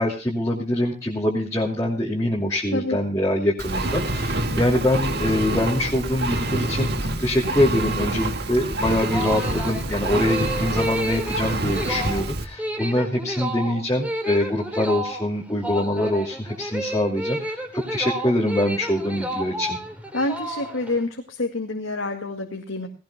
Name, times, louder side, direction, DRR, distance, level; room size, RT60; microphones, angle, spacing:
voice 1, 0.0-6.9 7.2-19.8, left 1 dB, 15° left, -3 dB, 2.6 m, -24 dB
Engine, 3.6-12.4, right 1 dB, 55° right, 1.8 m, -26 dB
sound 1, 9.1-21.0, equal, 5° right, 2.8 m, -31 dB
voice 2, 20.1-22.9, left 2 dB, 85° left, 2 dB, 2.2 m, -27 dB
19.0 x 18.0 x 2.2 m, 0.34 s
head